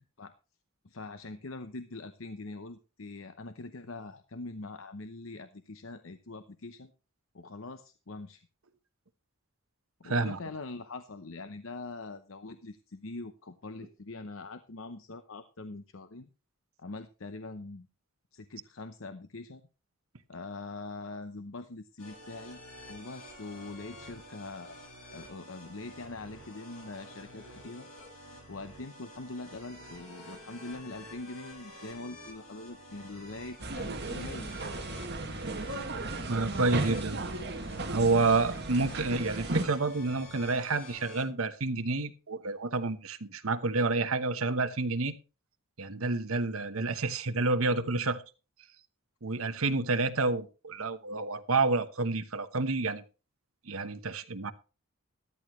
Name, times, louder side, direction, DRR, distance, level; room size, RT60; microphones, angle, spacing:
voice 1, 0.8-6.9 7.3-8.5 10.0-16.3 16.8-17.9 18.3-19.6 20.3-22.6 22.9-24.8 25.1-27.9 28.5-34.5, left 3 dB, 65° left, 10 dB, 0.8 m, -43 dB
voice 2, 10.0-10.4 36.3-37.2 37.9-45.1 45.8-48.2 49.2-53.0 53.7-54.5, right 3 dB, 75° right, 10 dB, 1.1 m, -29 dB
sound 1, 22.0-41.2, left 1 dB, 85° left, 7.1 m, -49 dB
sound 2, 33.6-39.6, right 2 dB, 50° right, 2.0 m, -35 dB
13.5 x 13.0 x 3.1 m, 0.33 s
head